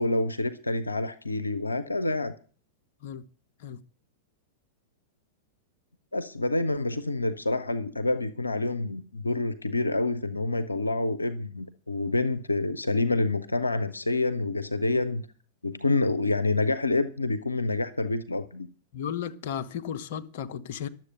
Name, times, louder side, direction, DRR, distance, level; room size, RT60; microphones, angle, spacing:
voice 1, 0.0-2.3 6.1-15.2 15.6-18.7, left 2 dB, 90° left, 0.7 m, -27 dB
voice 2, 18.9-20.9, left 8 dB, 55° left, 1.0 m, -34 dB
11.5 x 7.6 x 7.8 m
figure-of-eight pair, 95°, 0 cm